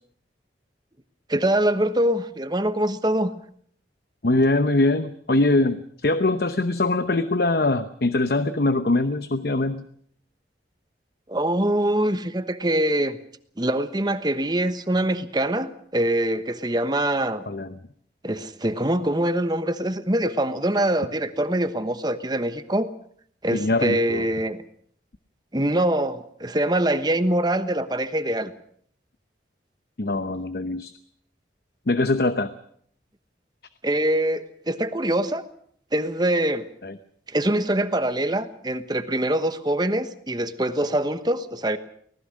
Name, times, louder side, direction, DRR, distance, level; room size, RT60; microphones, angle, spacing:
voice 1, 1.3-3.3 11.3-13.2 13.6-17.4 18.2-22.9 23.4-24.6 25.5-28.5 33.8-35.4 35.9-36.7 37.3-41.8, right 1 dB, 25° right, 11 dB, 1.1 m, -24 dB
voice 2, 4.2-9.8 17.5-17.7 23.5-24.3 30.0-30.9 31.9-32.5 36.8-36.9, left 2 dB, 55° left, 11 dB, 0.9 m, -22 dB
25.0 x 19.0 x 6.4 m, 0.63 s
head